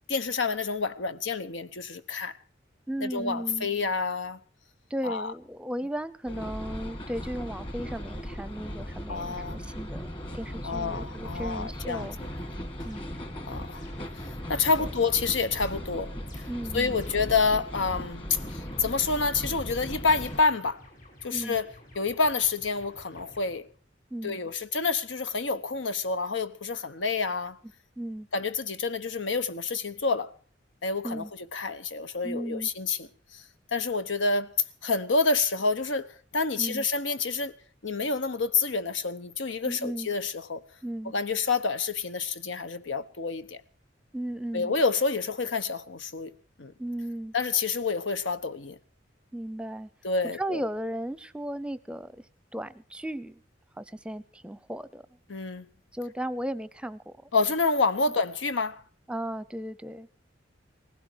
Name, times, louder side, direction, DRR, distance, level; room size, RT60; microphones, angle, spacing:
voice 1, 0.1-2.3 3.0-4.4 5.0-5.3 9.1-9.6 10.6-12.1 13.5-13.8 14.2-16.5 16.7-20.8 21.2-23.7 24.2-27.6 28.3-30.3 30.8-33.4 33.7-34.5 34.8-37.5 37.8-40.6 41.0-43.6 44.5-46.3 46.6-46.7 47.3-48.8 50.0-50.6 55.3-55.7 57.3-58.8, left 4 dB, 85° left, 1.1 m, -28 dB
voice 2, 2.9-3.7 4.9-12.2 12.8-13.1 14.8-14.9 16.5-17.0 21.3-21.6 24.1-24.4 28.0-28.3 31.0-31.3 32.2-32.7 36.6-36.9 39.6-40.1 40.8-41.1 44.1-44.7 46.8-47.3 49.3-49.9 50.4-52.2 52.5-53.4 53.8-55.0 55.9-57.1 59.1-60.1, right 1 dB, 5° right, 0.7 m, -35 dB
sound 1, 6.3-20.4, equal, 30° left, 2.1 m, -38 dB
sound 2, 11.9-17.5 18.3-19.6 20.2-23.9, left 1 dB, 45° left, 6.8 m, -52 dB
19.0 x 16.5 x 4.7 m
head